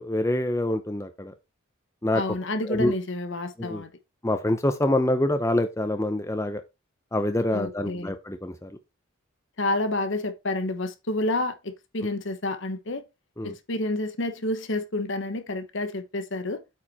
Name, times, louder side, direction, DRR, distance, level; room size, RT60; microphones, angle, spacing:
voice 1, 0.0-1.3 2.0-2.2 2.7-2.9 3.6-3.8 4.2-6.6 7.1-8.7 13.4-13.5, left 1 dB, 15° left, 0.6 m, -26 dB
voice 2, 2.1-3.9 7.5-8.1 9.6-13.0 13.4-16.6, left 2 dB, 60° left, 1.1 m, -29 dB
8.7 x 4.8 x 4.2 m
head